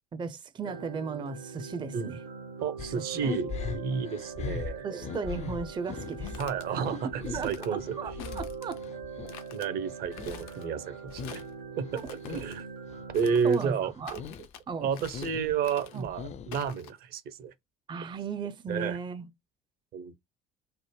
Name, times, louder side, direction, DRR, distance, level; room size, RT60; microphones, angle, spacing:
voice 1, 0.1-2.2 2.9-3.4 4.8-6.4 6.7-6.9 7.1-8.8 11.9-12.1 13.4-14.2 14.7-15.0 15.9-16.1 17.9-19.3, right 5 dB, 25° right, 0.5 m, -36 dB
sound 1, 0.6-13.5, right 5 dB, 80° right, 1.1 m, -42 dB
voice 2, 2.6-4.8 6.4-7.0 7.4-7.8 9.5-11.4 11.8-11.9 12.3-12.7 13.1-14.2 14.8-17.5 18.7-19.0 19.9-20.1, right 6 dB, 55° right, 0.8 m, -31 dB
sound 2, 2.8-9.4 9.8-11.5 11.8-12.5 12.9-13.5 13.8-14.5 14.8-16.7, left 7 dB, 35° left, 0.4 m, -40 dB
sound 3, 6.0-6.7 7.2-7.7 8.2-8.9 9.3-9.7 10.1-10.7 11.1-11.6 11.9-12.6 13.1-13.7 14.0-14.6 14.9-15.4 15.6-16.1 16.5-16.9, left 9 dB, 75° left, 0.7 m, -48 dB
3.3 x 2.0 x 3.0 m
hypercardioid pair, 60°, 18 cm